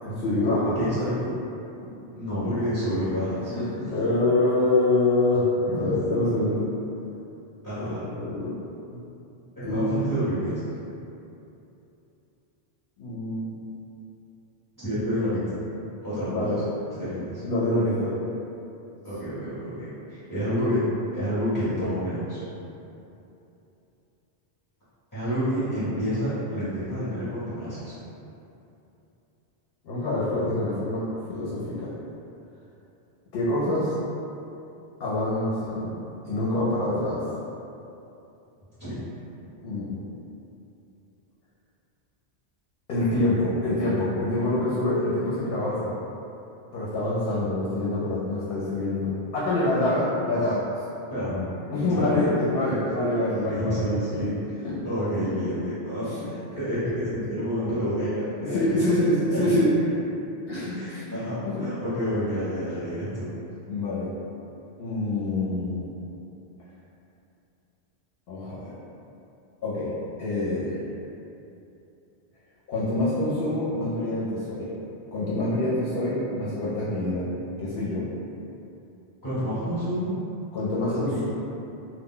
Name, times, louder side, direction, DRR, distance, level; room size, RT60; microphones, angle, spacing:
voice 1, 0.0-0.8 2.1-2.2 3.5-5.5 5.8-6.7 7.8-8.6 8.9-9.0 9.6-9.9 13.0-13.5 16.3-16.6 17.4-18.1 29.8-31.0 31.3-31.9 33.3-34.0 35.0-35.9 36.2-37.2 39.6-40.0 42.9-46.0 46.7-50.6 51.7-54.2 54.6-54.8 55.2-55.3 56.0-56.1 58.4-59.7 60.5-61.2 61.4-61.6 63.7-64.1 64.8-65.8 68.3-68.7 69.6-69.9 70.2-70.7 72.7-74.7 75.1-77.2 77.6-78.0 80.5-81.2, left 2 dB, 65° left, -9 dB, 0.8 m, -26 dB
voice 2, 0.7-1.3 2.1-3.9 5.7-5.9 7.6-8.0 9.6-10.8 14.7-15.6 16.0-16.6 16.9-17.4 19.0-20.8 21.1-22.4 25.1-27.9 38.8-39.0 51.1-52.2 53.4-58.8 59.3-59.5 60.7-63.3 79.2-80.1 80.7-81.2, equal, 20° left, -14 dB, 0.6 m, -29 dB
2.1 x 2.1 x 3.6 m, 2.8 s
omnidirectional pair, 1.1 m